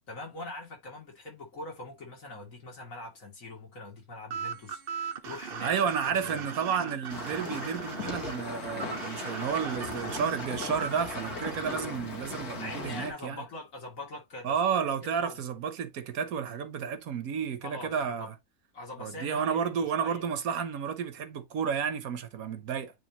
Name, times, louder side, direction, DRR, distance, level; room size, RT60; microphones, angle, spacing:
voice 1, 0.1-5.8 6.0-6.4 12.6-14.6 14.8-15.4 17.6-18.3 18.7-20.3, left 2 dB, 60° left, 2.9 m, -43 dB
sound 1, 4.3-11.7, right 6 dB, 45° right, 0.9 m, -39 dB
voice 2, 5.6-13.4 14.4-18.3 19.0-22.9, right 7 dB, 75° right, 1.4 m, -31 dB
sound 2, 7.1-13.1, left 3 dB, 85° left, 2.2 m, -38 dB
9.2 x 3.5 x 2.9 m
omnidirectional pair, 1.6 m